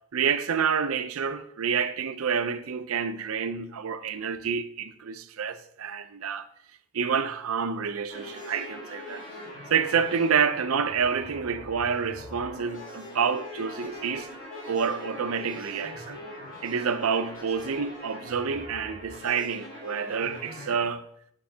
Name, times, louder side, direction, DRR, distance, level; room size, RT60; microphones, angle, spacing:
voice 1, 0.1-6.5 6.9-9.2 9.7-14.3 14.7-16.2 16.6-21.0, right 6 dB, 85° right, 0.5 m, -28 dB
sound 1, 8.1-20.8, left 1 dB, 60° left, 3.3 m, -42 dB
8.6 x 6.5 x 2.8 m
head